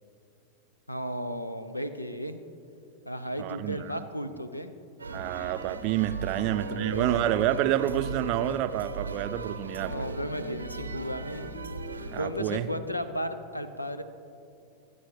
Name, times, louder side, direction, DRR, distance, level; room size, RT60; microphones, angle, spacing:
voice 1, 0.9-2.4 3.1-4.7 6.4-7.4 9.9-11.5 12.2-14.0, equal, 85° left, 11 dB, 0.6 m, -34 dB
voice 2, 3.4-4.1 5.1-10.0 12.1-12.7, right 12 dB, 45° right, 12 dB, 0.5 m, -28 dB
sound 1, 5.0-12.2, right 3 dB, 80° right, 0.7 m, -38 dB
27.0 x 9.7 x 3.2 m, 2.6 s
figure-of-eight pair, 90°, 0 cm